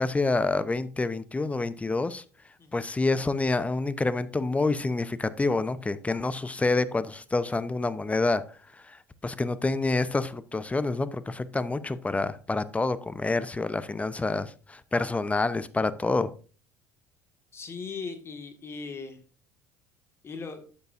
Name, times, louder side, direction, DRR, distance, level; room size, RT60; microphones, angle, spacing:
voice 1, 0.0-2.2 2.7-8.4 8.7-9.0 9.2-16.3, left 3 dB, 15° left, 0.8 m, -27 dB
voice 2, 17.5-19.2 20.2-20.6, left 4 dB, 30° left, 1.8 m, -38 dB
12.0 x 8.0 x 2.6 m
hypercardioid pair, 65°, 8 cm